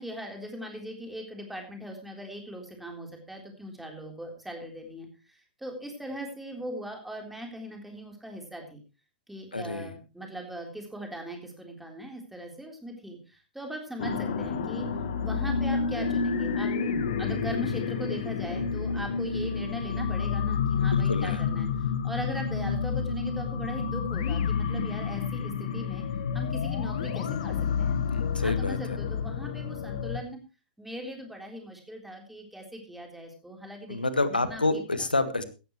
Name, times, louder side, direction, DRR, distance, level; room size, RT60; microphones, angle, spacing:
voice 1, 0.0-8.8 9.3-14.9 15.2-16.7 17.2-26.0 26.3-28.0 28.4-30.4 30.8-34.0 34.3-35.1, equal, 5° right, 2 dB, 3.7 m, -40 dB
voice 2, 9.5-9.9 20.8-21.4 28.1-29.0 33.9-35.4, left 2 dB, 80° left, 12 dB, 1.6 m, -29 dB
sound 1, 14.0-30.2, left 6 dB, 50° left, 1.4 m, -29 dB
16.5 x 13.5 x 3.1 m, 0.32 s
figure-of-eight pair, 105°, 5 cm